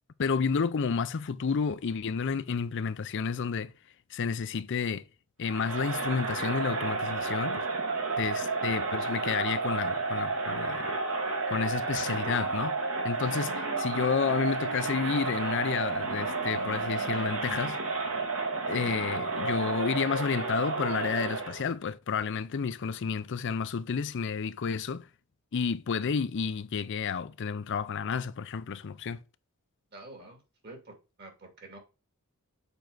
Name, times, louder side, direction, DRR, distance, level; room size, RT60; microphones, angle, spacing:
voice 1, 0.2-3.7 4.1-5.0 5.4-7.7 8.2-10.9 11.5-12.8 13.0-17.8 18.7-25.1 25.5-29.2, left 6 dB, 55° left, 0.5 m, -31 dB
Crowd, 5.5-21.6, right 3 dB, 70° right, 2.0 m, -31 dB
voice 2, 29.9-31.8, right 2 dB, 50° right, 2.4 m, -48 dB
7.0 x 4.5 x 3.9 m
head